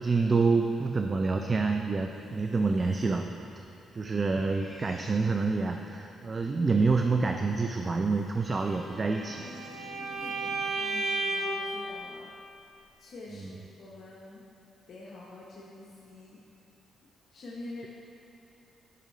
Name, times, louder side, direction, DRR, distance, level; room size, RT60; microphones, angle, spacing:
voice 1, 0.0-3.3 3.9-9.4, right 4 dB, 30° right, 4 dB, 0.4 m, -27 dB
sound 1, 2.1-10.6, left 2 dB, 25° left, 1.3 m, -52 dB
Bowed string instrument, 8.7-11.7, right 2 dB, 75° right, 1.0 m, -33 dB
voice 2, 10.8-12.4 13.0-14.4 14.9-16.4 17.3-17.9, left 2 dB, 60° left, -5 dB, 1.0 m, -46 dB
11.0 x 5.5 x 3.1 m, 2.8 s
cardioid pair, 95°, 0 cm